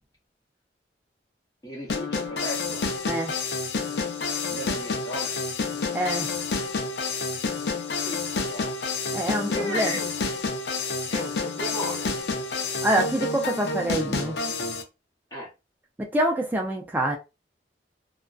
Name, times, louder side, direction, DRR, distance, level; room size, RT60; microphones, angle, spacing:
voice 1, 1.6-2.8 4.5-5.4 8.0-8.7 9.5-10.1 11.1-12.1 15.3-15.5, equal, 20° left, 0.7 m, -35 dB
sound 1, 1.9-14.8, left 4 dB, 70° left, 0.5 m, -29 dB
voice 2, 5.9-6.3 9.1-9.9 12.8-14.4 16.0-17.2, right 1 dB, 10° right, 0.4 m, -26 dB
2.5 x 2.2 x 2.3 m
head